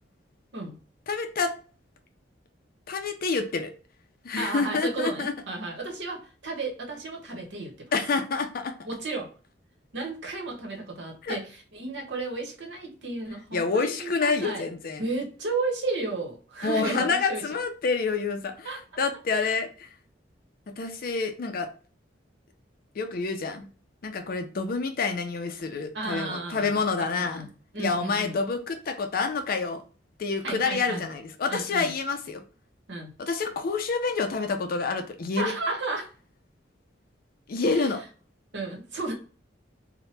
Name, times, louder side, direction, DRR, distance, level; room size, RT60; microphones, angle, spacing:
voice 1, 1.1-1.5 2.9-3.7 4.2-5.3 7.9-8.7 11.2-11.4 13.5-15.1 16.6-19.9 20.8-21.7 22.9-23.7 24.0-27.5 27.8-29.8 30.2-32.4 33.2-35.5 37.5-38.0, left 4 dB, 55° left, 6 dB, 0.4 m, -28 dB
voice 2, 4.4-7.9 8.8-9.3 9.9-14.6 15.0-17.4 18.6-18.8 25.9-27.5 27.7-28.3 30.4-31.0 31.5-31.9 32.9-33.1 35.4-36.1 38.5-39.1, right 3 dB, 70° right, 1 dB, 0.9 m, -33 dB
2.8 x 2.1 x 3.1 m, 0.38 s
head